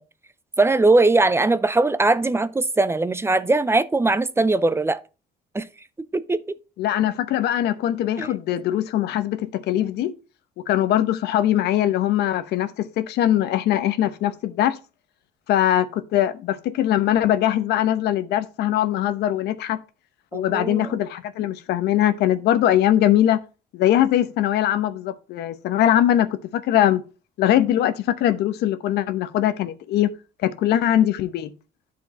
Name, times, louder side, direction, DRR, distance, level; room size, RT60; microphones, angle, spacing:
voice 1, 0.6-5.0 5.5-5.7 6.1-6.4 8.2-8.3 20.3-21.0, right 2 dB, 15° right, 0.5 m, -20 dB
voice 2, 6.8-10.1 10.7-14.8 15.5-19.8 20.3-23.4 23.7-27.0 27.4-30.1 30.4-31.5, left 12 dB, 80° left, 0.9 m, -21 dB
10.5 x 4.6 x 4.1 m
cardioid pair, 110°, 17 cm